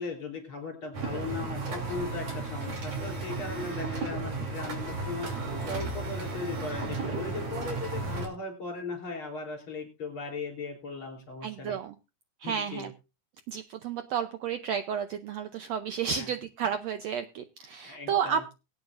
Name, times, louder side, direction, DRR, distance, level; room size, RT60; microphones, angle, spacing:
voice 1, 0.0-11.8 12.4-12.9 16.1-16.3 17.8-18.4, left 4 dB, 40° left, 3 dB, 4.4 m, -38 dB
sound 1, 0.9-8.3, right 3 dB, 55° right, 3.9 m, -34 dB
voice 2, 11.4-11.9 12.4-12.9 13.5-18.6, right 7 dB, 75° right, 9 dB, 1.6 m, -32 dB
24.0 x 8.9 x 2.5 m, 0.29 s
omnidirectional pair, 3.6 m